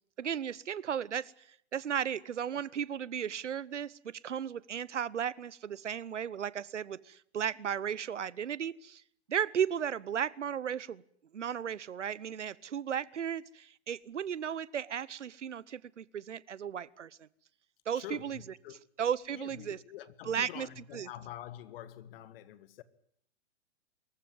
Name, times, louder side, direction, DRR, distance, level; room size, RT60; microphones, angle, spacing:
voice 1, 0.2-1.3 1.7-9.0 9.3-11.0 11.3-17.1 17.9-18.4 19.0-19.8 20.2-20.7 20.9-21.1, right 8 dB, 85° right, 1.0 m, -35 dB
voice 2, 17.9-18.8 19.3-22.8, left 12 dB, 55° left, 2.0 m, -46 dB
24.0 x 14.5 x 9.4 m
hypercardioid pair, 120°, 35 cm